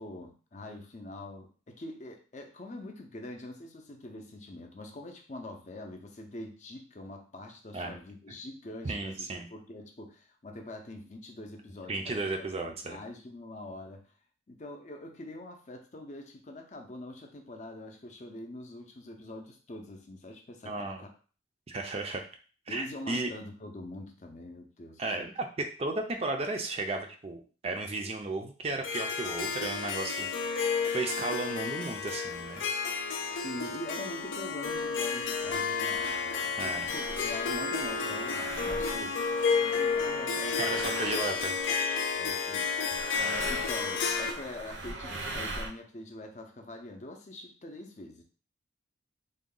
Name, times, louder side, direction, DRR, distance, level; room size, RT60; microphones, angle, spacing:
voice 1, 0.0-14.1 14.5-21.1 22.7-25.3 33.3-39.2 39.6-41.5 42.2-42.8 43.1-48.2, left 1 dB, 40° left, 3 dB, 0.5 m, -44 dB
voice 2, 8.8-9.5 11.9-13.0 20.6-21.0 21.7-22.2 22.7-23.3 25.0-32.7 33.2-33.4 36.6-36.9 40.6-41.6, right 2 dB, 30° right, 4 dB, 0.4 m, -34 dB
Harp, 28.8-44.3, left 5 dB, 85° left, 0.6 m, -31 dB
sound 1, 34.7-34.8 35.5-35.6 35.9-41.8 42.9-45.7, right 2 dB, 70° right, 0.7 m, -41 dB
3.6 x 2.2 x 3.7 m, 0.38 s
head